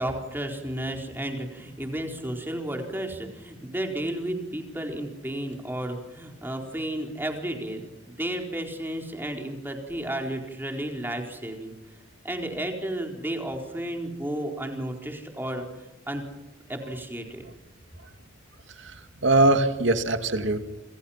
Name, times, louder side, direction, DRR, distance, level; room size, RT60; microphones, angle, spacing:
voice 1, 0.0-11.7 12.2-15.6 16.1-16.2 16.7-17.4, right 1 dB, 10° right, 2 dB, 4.2 m, -32 dB
voice 2, 18.8-20.6, right 2 dB, 75° right, 8 dB, 2.4 m, -22 dB
30.0 x 27.5 x 5.8 m, 1.0 s
head